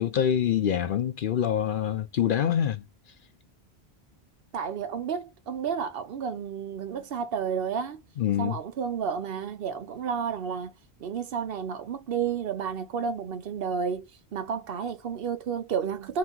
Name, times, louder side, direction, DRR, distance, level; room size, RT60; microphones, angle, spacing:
voice 1, 0.0-2.8 8.2-8.6, left 9 dB, 60° left, 0.6 m, -25 dB
voice 2, 4.5-8.0 8.4-10.7 11.0-14.1 14.3-16.2, right 7 dB, 65° right, 0.8 m, -31 dB
2.9 x 2.2 x 3.6 m
omnidirectional pair, 1.1 m